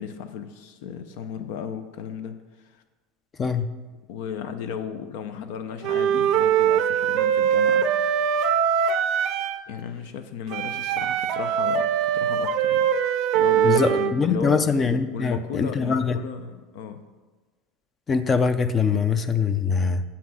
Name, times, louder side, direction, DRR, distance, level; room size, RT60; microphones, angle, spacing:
voice 1, 0.0-2.8 4.1-7.9 9.7-14.6 15.1-17.0, left 7 dB, 70° left, 9 dB, 0.6 m, -35 dB
Wind instrument woodwind instrument, 5.8-9.6 10.5-14.1, right 9 dB, 50° right, 0.5 m, -22 dB
voice 2, 13.6-16.2 18.1-20.0, left 5 dB, 20° left, 11 dB, 0.4 m, -23 dB
7.4 x 5.8 x 6.2 m, 1.3 s
supercardioid pair, 150°, 0 cm